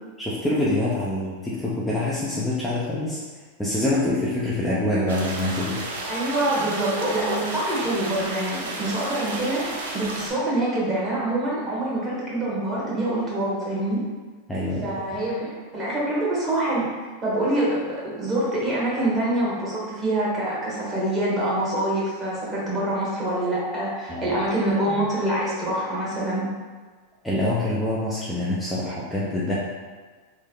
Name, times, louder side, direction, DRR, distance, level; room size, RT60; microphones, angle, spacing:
voice 1, 0.2-3.2 3.6-5.8 14.5-15.0 24.1-24.4 27.2-29.6, left 1 dB, 5° left, -7 dB, 0.6 m, -25 dB
sound 1, 5.1-10.3, right 2 dB, 75° right, 0.5 m, -32 dB
voice 2, 6.1-14.0 14.8-16.9 17.2-26.5, right 1 dB, 25° right, -6 dB, 1.4 m, -25 dB
3.3 x 2.1 x 3.7 m, 1.4 s
hypercardioid pair, 100°, 0 cm